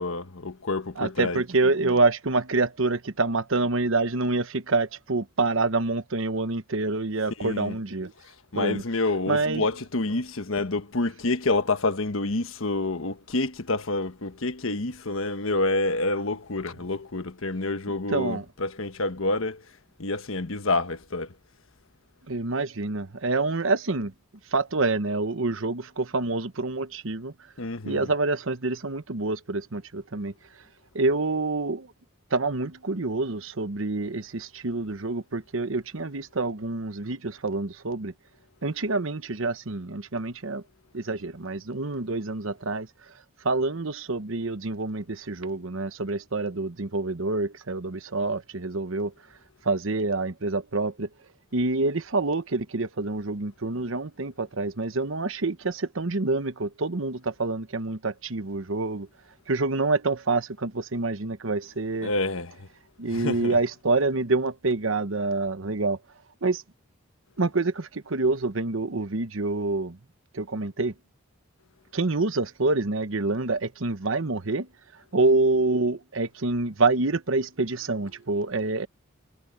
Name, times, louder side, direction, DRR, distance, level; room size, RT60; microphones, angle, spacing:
voice 1, 0.0-1.4 7.4-7.8 8.5-19.6 20.0-21.3 27.6-28.1 62.0-62.7 63.1-63.6, left 2 dB, 75° left, 1.3 m, -28 dB
voice 2, 1.0-8.1 8.5-8.8 9.3-9.6 18.1-18.4 22.3-24.1 24.5-27.3 27.8-30.3 30.9-31.9 32.3-38.1 38.6-40.6 40.9-42.9 43.4-49.1 49.6-51.1 51.5-59.1 59.5-62.1 63.0-66.0 66.4-66.6 67.4-70.0 70.3-70.9 71.9-74.7 75.1-78.9, right 3 dB, 70° right, 1.1 m, -27 dB
head